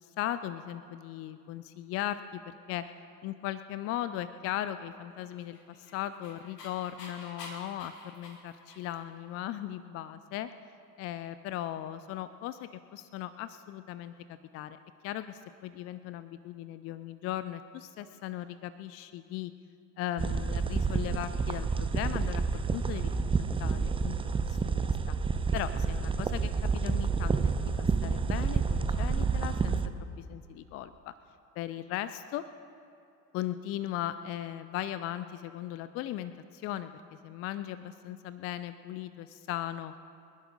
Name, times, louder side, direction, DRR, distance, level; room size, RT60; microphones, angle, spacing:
voice 1, 0.2-2.9 3.2-10.5 11.0-14.8 15.0-19.5 20.0-22.4 22.7-23.3 23.6-25.2 25.5-27.5 27.8-29.8 30.2-31.1 31.6-32.4 33.3-37.0 37.2-39.9, left 12 dB, 30° left, 13 dB, 0.4 m, -38 dB
Dog, 5.4-9.2, left 3 dB, 75° left, 2.3 m, -48 dB
sound 1, 20.2-29.9, right 5 dB, 10° right, 0.6 m, -29 dB
28.5 x 11.5 x 3.8 m, 2.6 s
figure-of-eight pair, 70°, 49 cm